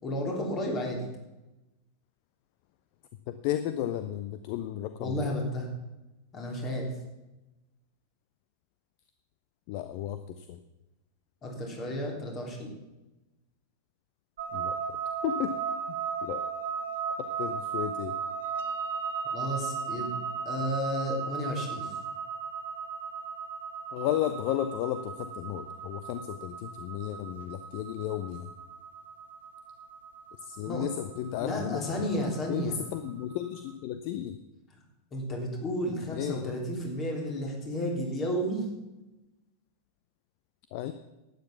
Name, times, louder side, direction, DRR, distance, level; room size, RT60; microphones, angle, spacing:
voice 1, 0.0-1.0 5.0-5.7 6.3-6.9 11.4-12.7 19.3-20.1 20.4-21.9 30.6-30.9 31.4-32.8 35.1-38.6, equal, 30° left, 1 dB, 3.4 m, -32 dB
voice 2, 3.3-5.2 9.7-10.6 14.5-15.0 15.2-15.6 16.2-16.4 17.2-18.2 23.9-28.5 30.4-32.1 32.5-34.4 36.1-36.5 40.7-40.9, left 11 dB, 45° left, 11 dB, 0.6 m, -33 dB
sound 1, 14.4-33.5, right 6 dB, 60° right, 1.1 m, -36 dB
11.5 x 9.3 x 6.0 m, 1.0 s
figure-of-eight pair, 90°, 0 cm